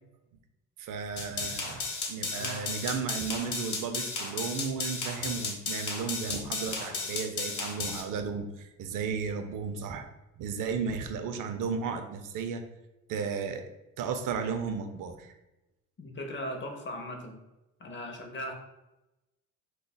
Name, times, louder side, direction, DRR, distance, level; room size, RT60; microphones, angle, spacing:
voice 1, 0.8-1.8 2.1-10.1 10.4-12.6 13.1-13.6 14.0-15.3, right 6 dB, 90° right, 7 dB, 0.5 m, -34 dB
sound 1, 1.2-8.0, left 4 dB, 65° left, 0.9 m, -34 dB
voice 2, 16.0-17.4 17.8-18.5, left 1 dB, 35° left, 2 dB, 0.7 m, -38 dB
5.2 x 2.3 x 2.2 m, 0.98 s
cardioid pair, 115°, 31 cm